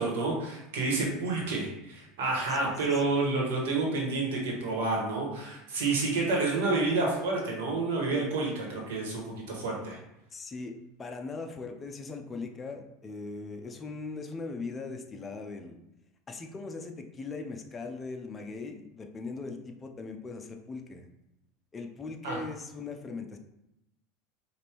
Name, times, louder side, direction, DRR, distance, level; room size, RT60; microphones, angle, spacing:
voice 1, 0.0-10.0 22.2-22.4, right 3 dB, 80° right, -2 dB, 1.4 m, -29 dB
voice 2, 2.5-3.1 10.3-10.7 11.0-15.8 16.3-21.1 21.7-23.4, left 3 dB, 20° left, 4 dB, 0.5 m, -40 dB
5.0 x 2.6 x 3.0 m, 0.87 s
supercardioid pair, 130°, 0 cm